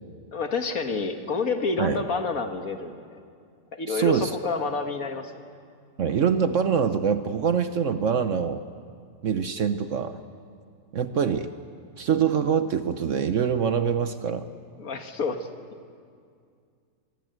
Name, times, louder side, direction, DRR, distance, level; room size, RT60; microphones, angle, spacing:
voice 1, 0.3-3.2 3.7-5.3 14.8-15.5, left 4 dB, 60° left, 6 dB, 1.9 m, -29 dB
voice 2, 3.9-4.4 6.0-8.6 9.2-10.2 10.9-11.5 12.0-14.5, right 7 dB, 55° right, 10 dB, 1.0 m, -24 dB
25.0 x 20.0 x 7.9 m, 2.2 s
omnidirectional pair, 1.7 m